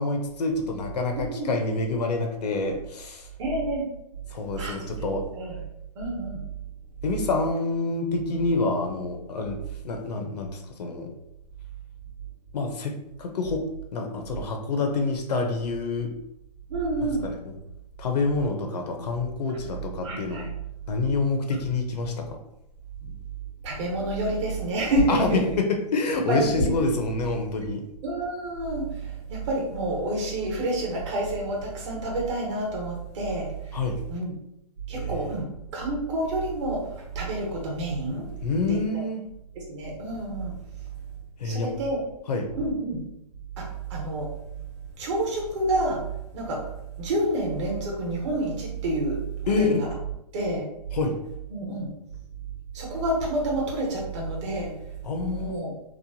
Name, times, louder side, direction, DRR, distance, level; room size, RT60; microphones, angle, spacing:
voice 1, 0.0-3.3 4.3-5.2 7.0-11.1 12.5-13.6 13.9-16.1 17.2-17.6 18.0-20.5 20.9-22.2 25.1-27.9 33.7-34.0 34.9-35.2 38.4-39.2 41.4-41.7 42.3-42.5 49.5-49.8 50.9-51.2 55.0-55.7, left 3 dB, 75° left, 3 dB, 0.6 m, -27 dB
voice 2, 1.2-1.5 3.4-3.8 4.6-4.7 5.4-5.6 5.9-6.4 16.7-17.3 20.0-20.5 23.0-23.1 23.6-25.4 26.3-26.7 28.0-33.8 34.1-34.3 34.9-38.3 38.7-39.0 39.5-40.6 41.4-42.0 42.6-43.0 43.6-44.3 45.0-46.0 46.3-46.6 47.0-49.2 49.4-49.9 50.3-50.6 51.5-51.9 52.7-54.7 55.3-55.7, right 1 dB, 45° right, -2 dB, 1.0 m, -28 dB
3.0 x 2.0 x 2.6 m, 0.83 s
hypercardioid pair, 145°, 21 cm